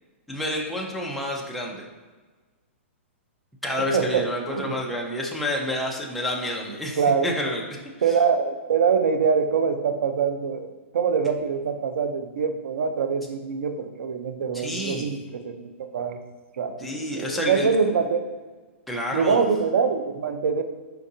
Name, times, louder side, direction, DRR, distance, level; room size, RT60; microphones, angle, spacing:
voice 1, 0.3-1.8 3.6-7.7 14.5-15.1 16.8-17.7 18.9-19.5, left 1 dB, ahead, -2 dB, 0.4 m, -29 dB
voice 2, 3.9-4.8 7.0-7.3 8.0-16.2 16.6-18.2 19.1-20.6, right 6 dB, 80° right, 7 dB, 0.5 m, -24 dB
4.5 x 3.7 x 2.7 m, 1.3 s
hypercardioid pair, 160°, 7 cm